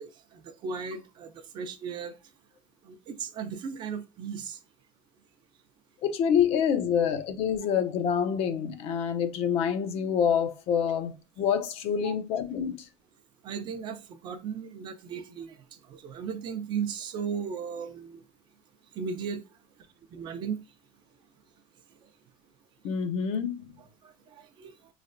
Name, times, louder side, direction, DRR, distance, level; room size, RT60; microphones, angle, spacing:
voice 1, 0.0-2.2 2.8-4.6 12.0-12.1 13.4-18.2 18.9-19.4 20.1-20.6 24.0-24.7, right 6 dB, 35° right, 0.5 m, -36 dB
voice 2, 6.0-12.8 22.8-23.7, left 8 dB, 45° left, 0.6 m, -27 dB
5.5 x 3.2 x 2.5 m
cardioid pair, 160°, 14 cm